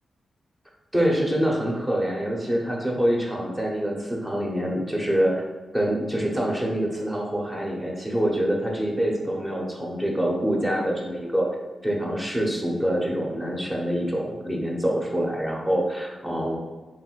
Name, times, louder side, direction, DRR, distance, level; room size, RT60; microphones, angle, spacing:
voice 1, 0.9-5.4 5.7-11.5 11.8-16.6, equal, 10° right, -1 dB, 0.9 m, -25 dB
3.3 x 2.4 x 4.5 m, 1.3 s
cardioid pair, 90°, 0 cm